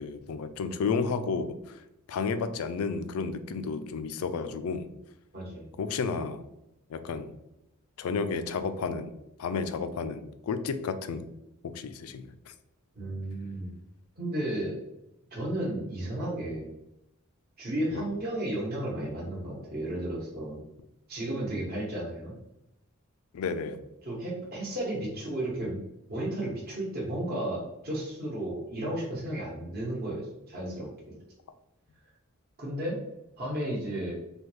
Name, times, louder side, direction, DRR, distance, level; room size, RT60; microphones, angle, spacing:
voice 1, 0.0-1.8 2.1-4.9 5.8-6.4 6.9-7.4 8.0-9.1 9.4-11.3 11.6-12.5 17.9-18.1 23.3-23.8, left 5 dB, 85° left, 10 dB, 0.3 m, -32 dB
voice 2, 5.3-5.7 12.9-13.7 14.2-14.8 15.3-16.7 17.6-20.6 21.1-22.3 24.0-25.8 26.1-31.2 32.6-33.0 33.4-34.1, right 1 dB, 45° right, -4 dB, 1.0 m, -33 dB
3.5 x 2.3 x 3.1 m, 0.88 s
head